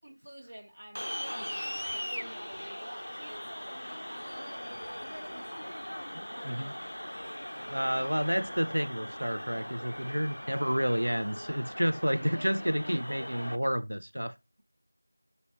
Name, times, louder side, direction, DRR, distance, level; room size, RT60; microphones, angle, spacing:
voice 1, 0.0-5.8 6.3-7.0 12.1-12.5, right 1 dB, 35° right, 0.5 m, -50 dB
sound 1, 1.0-13.6, equal, 85° left, 0.3 m, -40 dB
voice 2, 7.7-14.3, equal, 90° right, 0.5 m, -30 dB
5.2 x 2.9 x 2.9 m
figure-of-eight pair, 180°, 0 cm